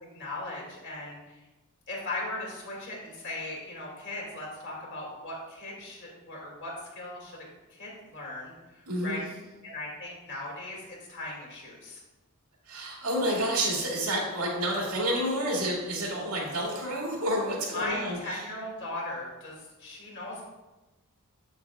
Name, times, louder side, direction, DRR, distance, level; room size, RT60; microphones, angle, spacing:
voice 1, 0.0-1.4 1.9-9.2 9.6-12.0 17.7-20.4, left 2 dB, 55° left, -3 dB, 2.3 m, -38 dB
voice 2, 8.9-9.2 12.7-18.4, right 1 dB, 80° right, -3 dB, 2.2 m, -29 dB
8.2 x 7.1 x 2.4 m, 1.1 s
head